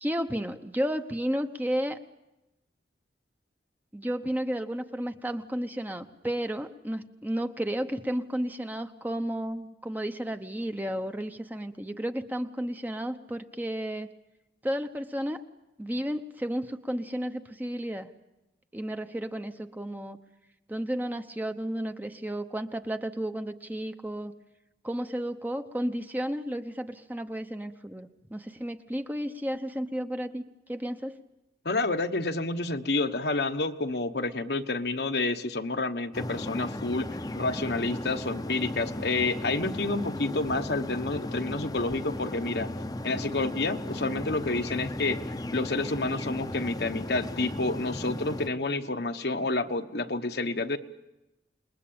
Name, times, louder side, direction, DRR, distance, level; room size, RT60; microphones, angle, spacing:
voice 1, 0.0-2.0 3.9-14.1 14.6-15.4 15.8-18.1 18.7-20.2 20.7-24.3 24.8-30.4 30.7-31.2, equal, 10° right, 8 dB, 0.8 m, -32 dB
voice 2, 31.6-37.1 37.3-42.7 43.0-45.2 45.5-50.8, left 2 dB, 65° left, 7 dB, 1.1 m, -29 dB
sound 1, 36.1-48.5, left 1 dB, 20° left, 0.8 m, -36 dB
28.5 x 20.5 x 8.7 m, 0.98 s
head